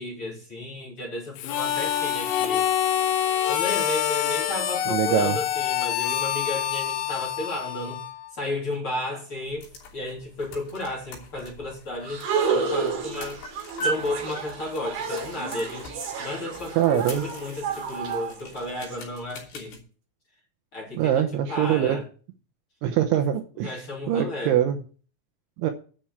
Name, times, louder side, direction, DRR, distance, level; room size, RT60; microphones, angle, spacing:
voice 1, 0.0-2.7 3.2-8.0 8.3-13.4 13.8-19.8 20.7-22.1 23.1-23.2 23.6-24.6, left 2 dB, 30° left, -3 dB, 3.4 m, -33 dB
Harmonica, 1.4-8.3, left 10 dB, 75° left, 3.8 m, -26 dB
voice 2, 4.9-5.3 16.8-17.2 21.0-22.0 22.8-23.8 24.1-24.8 25.6-25.7, right 10 dB, 75° right, 6 dB, 3.0 m, -23 dB
sound 1, 9.3-19.8, right 1 dB, 55° left, 4.9 m, -40 dB
sound 2, 12.1-19.0, right 5 dB, 55° right, 3.8 m, -31 dB
10.5 x 6.2 x 8.2 m, 0.40 s
omnidirectional pair, 5.9 m